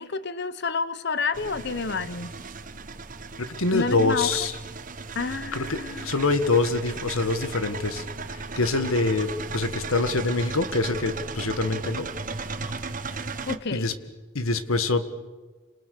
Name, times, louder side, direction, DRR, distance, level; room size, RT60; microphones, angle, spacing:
voice 1, 0.0-2.3 3.7-4.3 5.1-6.1 13.5-13.9, left 4 dB, 50° left, 14 dB, 0.9 m, -29 dB
sound 1, 1.3-13.6, right 4 dB, 40° right, 1.1 m, -36 dB
voice 2, 3.4-4.5 5.5-12.1 13.7-13.9 14.3-15.0, left 3 dB, 80° left, 10 dB, 1.8 m, -25 dB
29.5 x 27.0 x 6.6 m, 1.3 s
head